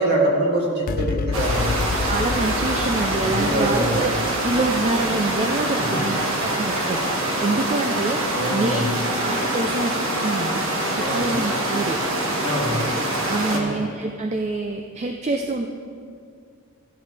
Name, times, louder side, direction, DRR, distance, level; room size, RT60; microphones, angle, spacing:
voice 1, 0.0-1.8 3.2-4.1 5.7-6.0 8.3-8.9 11.0-11.3 12.4-12.8 13.5-13.7, right 1 dB, 55° right, -3 dB, 2.5 m, -24 dB
sound 1, 0.9-7.6, left 3 dB, 45° left, 0.3 m, -31 dB
sound 2, 1.3-13.6, right 1 dB, 70° right, 1.6 m, -25 dB
voice 2, 2.0-4.1 4.3-8.9 9.2-10.6 10.9-12.0 12.5-12.8 13.3-15.7, right 3 dB, 30° right, 3 dB, 0.5 m, -26 dB
14.5 x 11.0 x 3.4 m, 2.2 s
head